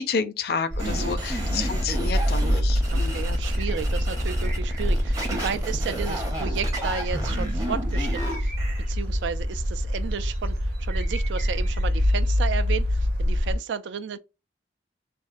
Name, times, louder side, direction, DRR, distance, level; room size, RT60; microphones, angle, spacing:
voice 1, 0.0-3.3, left 5 dB, 60° left, 0.4 m, -30 dB
sound 1, 0.7-13.6, equal, 70° right, 1.1 m, -26 dB
sound 2, 0.8-8.8, equal, 20° right, 0.7 m, -31 dB
voice 2, 0.8-1.2 2.9-8.5 8.9-14.2, right 6 dB, 90° right, 0.4 m, -33 dB
sound 3, 3.6-4.1 4.4-5.4 6.9-7.6 7.9-9.3 10.1-10.6 10.9-11.8, right 3 dB, 50° right, 0.9 m, -43 dB
3.5 x 2.1 x 2.5 m
head